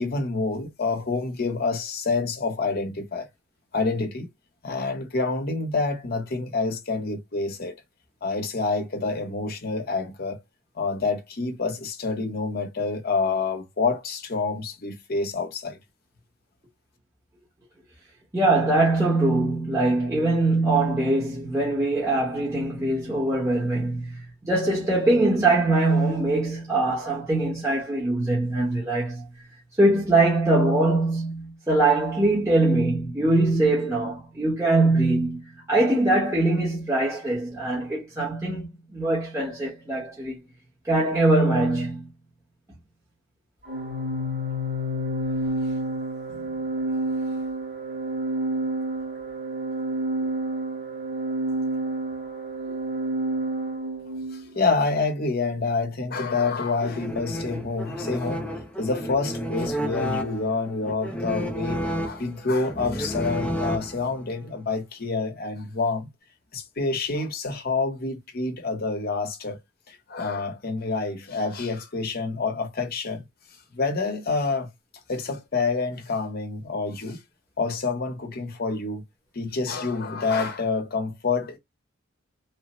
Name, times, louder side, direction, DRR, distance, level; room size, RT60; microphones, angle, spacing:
voice 1, 0.0-3.3 3.7-4.3 4.6-7.7 8.2-10.4 10.8-15.8 54.3-58.5 58.8-66.1 66.5-69.6 69.9-73.3 73.7-74.7 75.1-77.2 77.6-79.0 79.3-81.6, left 3 dB, 50° left, 0.7 m, -27 dB
voice 2, 18.3-29.2 29.8-40.3 40.9-42.1, right 2 dB, 15° right, 0.9 m, -22 dB
Organ, 43.6-54.4, right 1 dB, 45° right, 2.1 m, -29 dB
sound 1, 56.8-64.3, equal, 5° left, 0.4 m, -31 dB
3.2 x 2.0 x 2.9 m
head